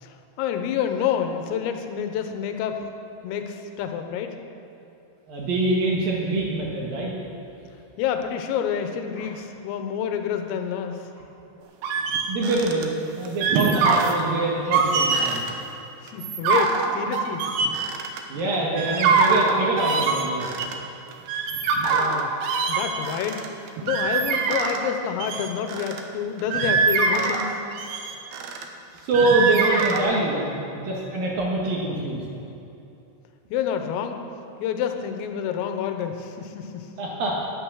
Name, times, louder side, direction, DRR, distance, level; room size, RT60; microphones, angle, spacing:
voice 1, 0.0-2.9 3.2-4.4 8.0-11.1 16.0-17.5 21.8-22.3 22.7-23.4 23.8-27.6 33.5-34.3 34.6-36.9, left 8 dB, 85° left, 6 dB, 3.5 m, -28 dB
voice 2, 5.3-7.1 9.2-9.3 12.3-12.9 13.1-15.5 18.3-20.5 28.9-32.2 37.0-37.3, right 2 dB, 60° right, -3 dB, 2.5 m, -24 dB
sound 1, 11.8-12.9 13.3-14.2 14.6-15.5 16.1-18.4 18.8-20.8 21.1-24.9 25.2-26.0 26.4-28.6 29.1-30.0, right 4 dB, 85° right, 2.2 m, -23 dB
12.5 x 11.0 x 6.3 m, 2.8 s
omnidirectional pair, 5.9 m